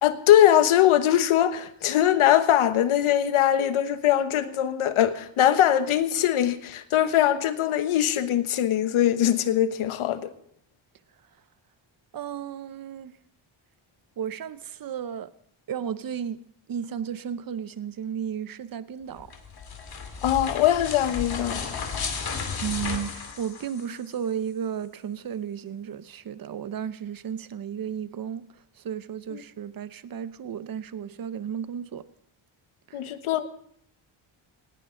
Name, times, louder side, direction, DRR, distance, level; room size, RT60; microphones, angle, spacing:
voice 1, 0.0-10.3 20.2-21.8 29.3-29.4 32.9-33.5, left 11 dB, 80° left, 1.2 m, -21 dB
voice 2, 12.1-13.2 14.2-15.3 15.7-16.4 16.7-19.3 22.0-22.1 22.6-32.1 32.9-33.0, right 8 dB, 45° right, 0.8 m, -34 dB
sound 1, 19.2-24.1, left 5 dB, 45° left, 2.5 m, -34 dB
18.0 x 17.5 x 3.8 m
cardioid pair, 125°, 49 cm